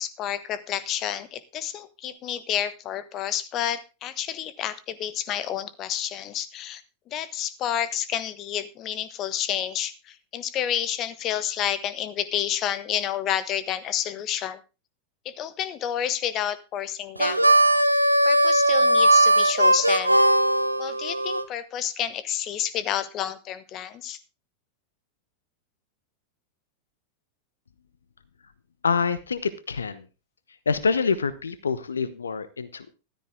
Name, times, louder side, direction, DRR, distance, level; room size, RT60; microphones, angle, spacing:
voice 1, 0.0-6.8 7.1-14.6 15.2-17.5 17.9-20.2 20.8-24.2, left 10 dB, 35° left, 16 dB, 1.2 m, -30 dB
Harmonica, 17.2-21.4, right 1 dB, 85° right, 0.9 m, -19 dB
voice 2, 28.8-30.0 30.7-32.9, left 5 dB, 70° left, 15 dB, 1.0 m, -26 dB
14.5 x 13.0 x 3.7 m, 0.30 s
figure-of-eight pair, 90°, 0 cm